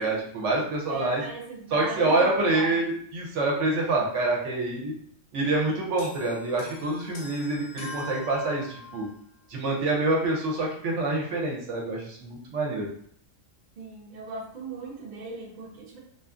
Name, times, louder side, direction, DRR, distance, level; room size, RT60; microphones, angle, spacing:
voice 1, 0.0-1.2 1.7-4.9 5.3-9.1 9.5-12.9, right 2 dB, 70° right, -2 dB, 0.9 m, -26 dB
voice 2, 0.9-2.9 13.8-16.0, right 3 dB, 50° right, -1 dB, 0.5 m, -38 dB
sound 1, 6.0-9.2, left 3 dB, 60° left, 0.6 m, -42 dB
2.5 x 2.3 x 2.3 m, 0.65 s
omnidirectional pair, 1.4 m